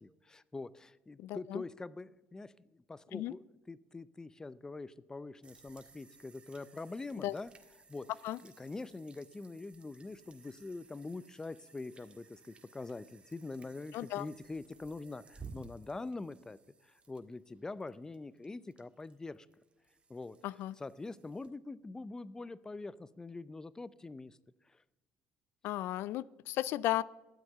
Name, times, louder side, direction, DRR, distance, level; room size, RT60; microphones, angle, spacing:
voice 1, 0.0-7.5 7.9-8.1 8.4-19.5 20.1-20.4 20.8-24.4 24.7-24.8, left 3 dB, 15° left, 18 dB, 0.5 m, -44 dB
voice 2, 1.2-1.6 3.1-3.3 7.2-7.3 8.2-8.4 13.9-14.3 20.4-20.7 25.6-27.0, left 15 dB, 75° left, 21 dB, 0.3 m, -35 dB
sound 1, 5.4-21.5, right 4 dB, 25° right, 1.6 m, -58 dB
13.0 x 7.8 x 6.6 m, 1.1 s
cardioid pair, 110°, 4 cm